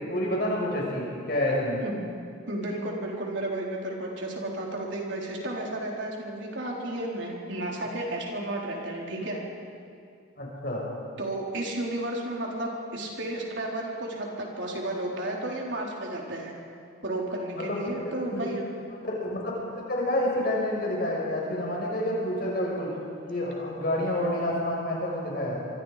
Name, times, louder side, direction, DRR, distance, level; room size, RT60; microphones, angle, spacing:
voice 1, 0.0-1.8 10.4-10.9 17.6-17.8 18.0-18.4 19.1-22.9 23.3-25.6, left 1 dB, 50° left, -3 dB, 6.0 m, -29 dB
voice 2, 2.5-9.4 11.2-16.5 17.0-18.6, right 1 dB, 65° right, -2 dB, 4.3 m, -33 dB
26.5 x 24.0 x 5.2 m, 2.4 s
head